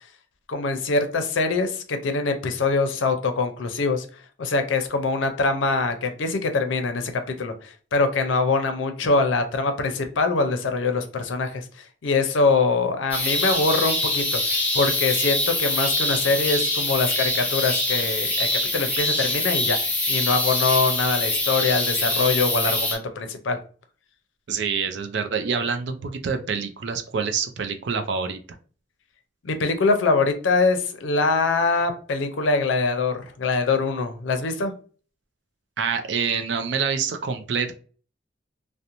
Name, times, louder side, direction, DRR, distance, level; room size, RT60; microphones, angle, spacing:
voice 1, 0.5-4.1 4.4-23.6 29.4-34.7, left 3 dB, 85° left, 7 dB, 0.5 m, -23 dB
sound 1, 13.1-23.0, left 2 dB, 10° left, 0.6 m, -24 dB
voice 2, 24.5-28.4 35.8-37.7, right 6 dB, 70° right, 7 dB, 0.4 m, -26 dB
2.5 x 2.1 x 2.8 m, 0.40 s
head